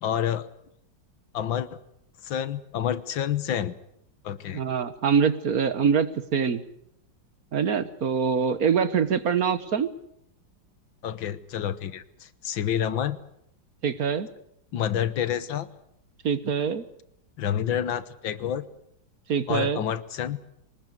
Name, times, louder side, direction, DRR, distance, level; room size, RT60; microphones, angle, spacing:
voice 1, 0.0-0.5 1.3-1.7 2.2-3.7 4.2-4.6 11.0-13.2 14.7-15.7 17.4-18.6 19.5-20.4, left 9 dB, 85° left, 14 dB, 1.9 m, -28 dB
voice 2, 4.5-6.6 7.5-9.9 13.8-14.3 16.2-16.8 19.3-19.8, right 6 dB, 55° right, 12 dB, 1.5 m, -24 dB
24.5 x 20.0 x 8.1 m, 0.75 s
omnidirectional pair, 2.1 m